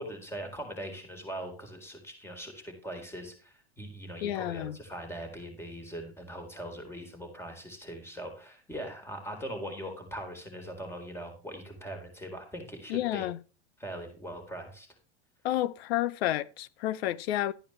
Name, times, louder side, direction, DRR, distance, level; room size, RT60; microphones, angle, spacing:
voice 1, 0.0-13.3 13.8-14.9, equal, 10° left, 4.0 m, -41 dB
voice 2, 4.2-4.8 12.9-13.4 15.4-17.5, left 14 dB, 75° left, 0.8 m, -30 dB
12.5 x 10.0 x 3.2 m
hypercardioid pair, 105°, 32 cm